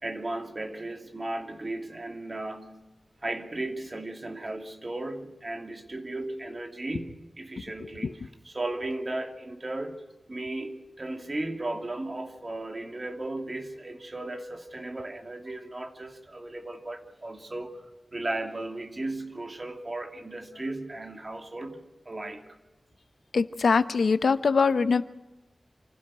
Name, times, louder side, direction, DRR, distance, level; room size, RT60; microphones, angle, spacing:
voice 1, 0.0-2.9 3.2-17.8 18.1-22.4, right 2 dB, 45° right, 5 dB, 2.6 m, -36 dB
voice 2, 23.3-25.0, left 5 dB, 90° left, 13 dB, 0.9 m, -22 dB
27.5 x 12.5 x 10.0 m, 1.1 s
cardioid pair, 50°, 0 cm